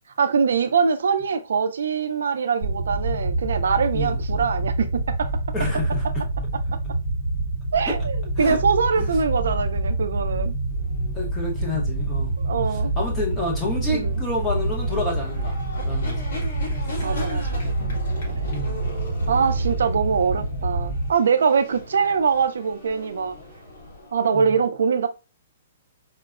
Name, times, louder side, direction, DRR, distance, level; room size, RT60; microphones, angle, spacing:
voice 1, 0.2-5.3 6.7-6.8 7.7-10.5 12.4-12.9 13.9-14.2 17.0-18.0 18.3-18.5 19.3-23.4 24.1-25.1, right 6 dB, 80° right, 0.3 m, -23 dB
sound 1, 2.6-21.1, right 2 dB, 40° right, 0.8 m, -26 dB
voice 2, 3.9-4.2 5.5-6.2 7.9-8.0 8.4-8.6 9.0-9.1 11.1-12.3 13.0-15.6 15.8-16.2 18.5-18.9 19.2-19.5 24.3-24.5, left 1 dB, 10° left, 0.7 m, -29 dB
sound 2, 10.7-24.3, left 1 dB, 65° left, 1.5 m, -40 dB
4.2 x 2.0 x 2.3 m
hypercardioid pair, 175°, 0 cm